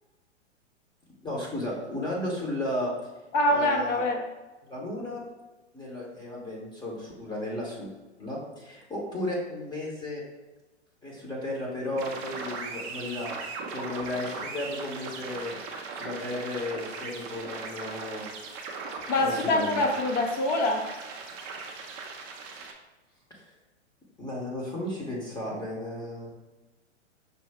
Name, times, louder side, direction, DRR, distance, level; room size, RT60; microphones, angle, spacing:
voice 1, 1.2-2.9 3.5-4.0 4.7-5.2 5.7-7.9 8.2-10.2 11.0-13.4 13.7-15.5 15.9-18.3 19.2-19.8 23.3-23.5 24.2-26.3, left 1 dB, 10° left, -3 dB, 0.9 m, -34 dB
voice 2, 3.3-4.2 19.1-20.8, left 1 dB, 35° left, 2 dB, 0.6 m, -25 dB
sound 1, 11.9-22.7, right 4 dB, 20° right, 0.4 m, -39 dB
5.4 x 2.6 x 3.5 m, 1.1 s
figure-of-eight pair, 110°, 36 cm